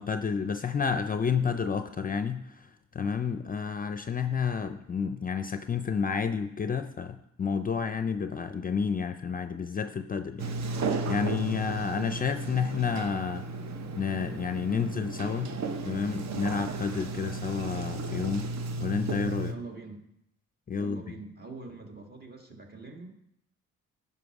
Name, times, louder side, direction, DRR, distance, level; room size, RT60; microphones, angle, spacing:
voice 1, 0.0-13.4 13.9-15.6 15.9-18.5 18.8-19.5 20.7-21.0, left 6 dB, 30° left, 9 dB, 0.5 m, -30 dB
Sliding door, 10.4-19.5, right 3 dB, 60° right, 0.8 m, -34 dB
voice 2, 19.4-20.0 20.8-23.1, right 3 dB, 30° right, 2 dB, 1.8 m, -44 dB
11.5 x 5.6 x 4.8 m, 0.81 s
cardioid pair, 90°, 30 cm